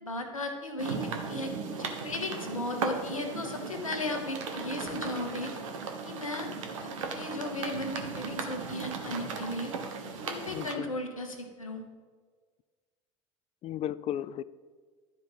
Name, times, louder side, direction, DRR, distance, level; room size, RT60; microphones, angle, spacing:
voice 1, 0.0-5.5 6.0-6.5 6.8-9.7 10.2-11.8, left 2 dB, 90° left, 4 dB, 1.1 m, -36 dB
sound 1, 0.8-10.7, right 5 dB, 75° right, 1.1 m, -37 dB
voice 2, 10.5-10.9 13.6-14.4, left 11 dB, 40° left, 17 dB, 0.4 m, -34 dB
12.0 x 5.0 x 5.6 m, 1.5 s
figure-of-eight pair, 70°, 17 cm